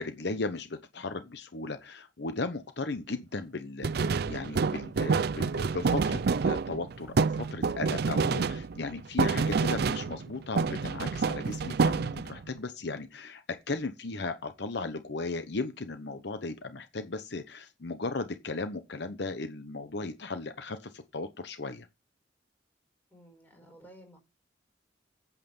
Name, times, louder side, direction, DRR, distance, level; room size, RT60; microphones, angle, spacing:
voice 1, 0.0-21.9, left 3 dB, 65° left, 0.9 m, -36 dB
sound 1, 3.8-10.3 10.6-12.4, right 4 dB, 60° right, 0.5 m, -28 dB
voice 2, 23.1-24.2, right 1 dB, 10° left, 5.4 m, -54 dB
8.8 x 8.4 x 5.4 m
head